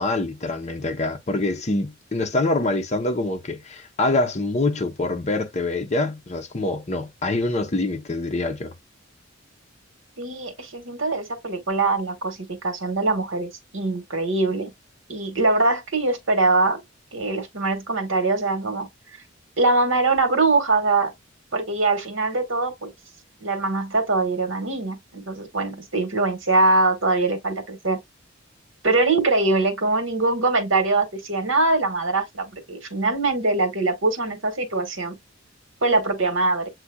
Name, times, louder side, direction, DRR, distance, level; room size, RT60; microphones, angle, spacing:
voice 1, 0.0-8.7, left 2 dB, 35° left, 0.9 m, -25 dB
voice 2, 10.2-14.7 15.1-16.8 17.1-18.9 19.6-21.1 21.5-22.9 23.4-28.0 28.8-35.2 35.8-36.7, right 3 dB, 70° right, 1.5 m, -22 dB
7.6 x 2.8 x 2.2 m
head